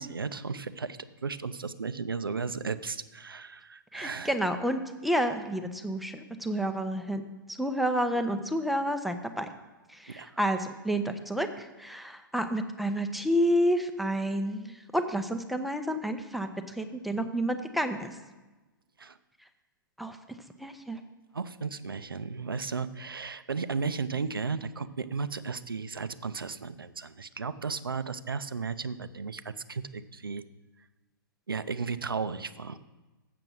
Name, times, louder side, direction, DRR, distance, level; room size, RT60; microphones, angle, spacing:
voice 1, 0.0-4.3 10.1-10.4 19.0-19.2 21.3-30.4 31.5-32.8, right 5 dB, 80° right, 13 dB, 0.5 m, -35 dB
voice 2, 3.9-7.2 7.5-9.5 9.9-18.2 20.0-20.2 20.6-21.0, equal, ahead, 8 dB, 0.5 m, -30 dB
7.7 x 6.8 x 6.1 m, 1.2 s
figure-of-eight pair, 115°, 12 cm